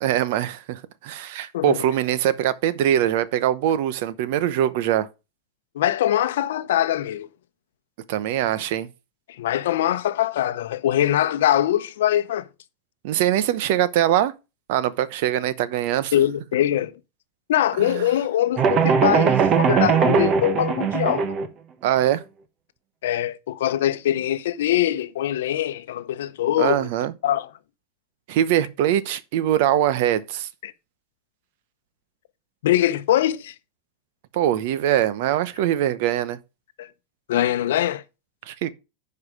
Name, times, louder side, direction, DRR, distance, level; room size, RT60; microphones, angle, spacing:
voice 1, 0.0-5.1 8.1-8.9 13.0-14.3 14.7-16.1 17.8-18.1 21.8-22.2 26.6-27.1 28.3-30.5 34.3-36.4 38.5-38.7, right 11 dB, 65° right, 0.8 m, -22 dB
voice 2, 5.7-7.3 9.4-12.5 16.1-16.9 17.5-21.4 23.0-26.9 27.2-27.5 30.6-30.7 32.6-33.5 36.8-36.9 37.3-38.0, left 12 dB, 85° left, 0.7 m, -22 dB
sound 1, 18.6-21.5, right 6 dB, 35° right, 1.1 m, -20 dB
9.8 x 4.8 x 4.8 m
supercardioid pair, 130°, 0 cm